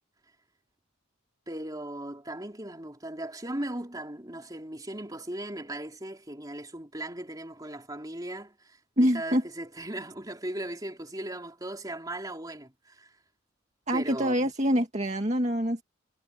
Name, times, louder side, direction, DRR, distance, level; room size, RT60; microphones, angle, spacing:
voice 1, 1.5-13.1 13.9-14.5, right 1 dB, 20° right, 3.4 m, -38 dB
voice 2, 9.0-9.4 13.9-15.8, equal, 35° right, 2.1 m, -25 dB
head